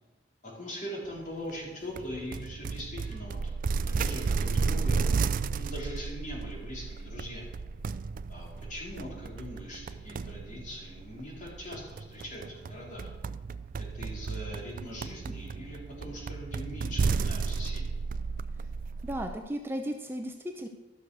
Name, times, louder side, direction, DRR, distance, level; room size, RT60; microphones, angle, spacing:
voice 1, 0.4-3.5 3.9-5.0 5.6-7.5 8.3-13.1 13.8-18.0, equal, 45° left, -3 dB, 3.7 m, -41 dB
sound 1, 2.0-19.4, right 4 dB, 50° right, 0.4 m, -33 dB
voice 2, 19.0-20.7, equal, 10° right, 4 dB, 0.7 m, -35 dB
12.5 x 6.6 x 6.2 m, 1.2 s
head